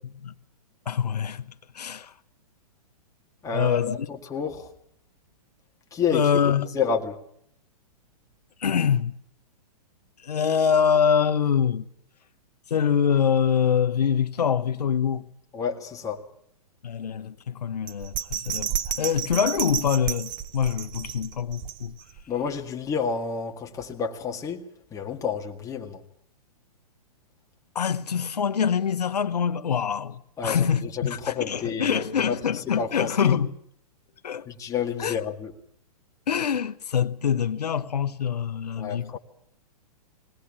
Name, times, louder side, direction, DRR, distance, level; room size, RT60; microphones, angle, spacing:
voice 1, 0.9-2.1 3.5-4.1 6.1-6.8 8.6-9.2 10.2-11.9 12.7-15.3 16.8-21.9 27.7-33.5 34.2-34.5 35.0-35.2 36.3-39.2, left 7 dB, 85° left, 1.0 m, -25 dB
voice 2, 3.4-4.7 5.9-7.2 15.5-16.3 22.3-26.0 30.4-33.4 34.5-35.5 38.8-39.2, left 6 dB, 15° left, 1.9 m, -30 dB
Bell, 17.9-22.2 22.6-22.7, right 10 dB, 25° right, 0.8 m, -32 dB
20.5 x 18.0 x 8.7 m
hypercardioid pair, 135°, 20 cm